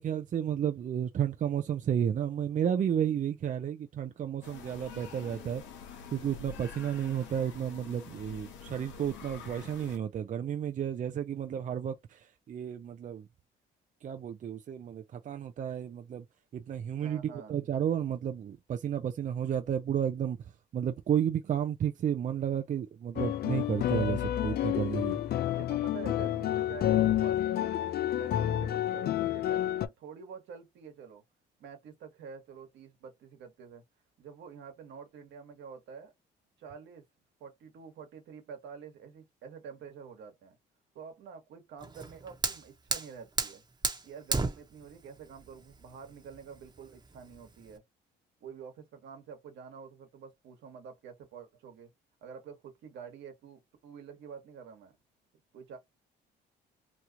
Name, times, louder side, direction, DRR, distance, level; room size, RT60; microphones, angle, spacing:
voice 1, 0.0-5.6 6.1-13.3 14.0-16.2 16.5-25.2, right 9 dB, 40° right, 0.5 m, -32 dB
sound 1, 4.4-10.0, left 5 dB, 75° left, 0.9 m, -47 dB
voice 2, 16.9-17.6 25.6-27.6 28.1-31.2 31.6-33.8 34.2-36.1 36.6-37.0 37.4-40.6 40.9-43.6 44.0-47.8 48.4-51.9 52.2-55.0 55.5-55.8, right 6 dB, 70° right, 1.4 m, -48 dB
sound 2, 23.2-29.9, left 12 dB, 55° left, 0.5 m, -29 dB
Fire, 41.8-47.8, right 3 dB, 20° right, 1.1 m, -35 dB
2.9 x 2.4 x 2.9 m
supercardioid pair, 80°, 19 cm